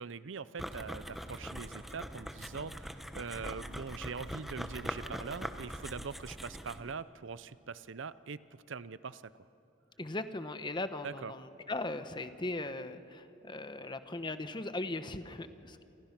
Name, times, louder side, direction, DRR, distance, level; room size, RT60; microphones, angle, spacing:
voice 1, 0.0-8.4 8.7-9.2 11.0-11.3, right 5 dB, 70° right, 16 dB, 0.6 m, -42 dB
sound 1, 0.6-6.9, equal, ahead, 1.0 m, -42 dB
voice 2, 10.0-15.8, left 2 dB, 25° left, 10 dB, 1.0 m, -38 dB
28.0 x 28.0 x 6.0 m, 2.8 s
head